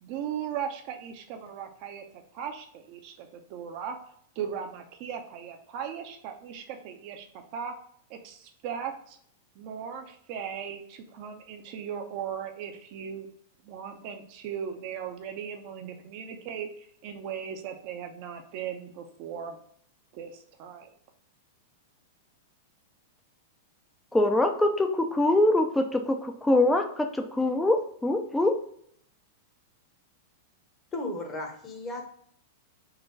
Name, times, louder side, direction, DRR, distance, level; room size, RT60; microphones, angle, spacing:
voice 1, 0.0-4.0 4.4-7.3 7.5-7.7 8.1-9.2 9.5-13.3 13.6-19.6 20.1-20.9, right 8 dB, 50° right, 5 dB, 0.7 m, -38 dB
voice 2, 24.1-28.6, left 1 dB, 5° left, 4 dB, 0.5 m, -24 dB
voice 3, 30.9-32.0, left 2 dB, 20° left, 1 dB, 1.0 m, -35 dB
3.9 x 2.2 x 3.9 m, 0.65 s
hypercardioid pair, 125°, 0 cm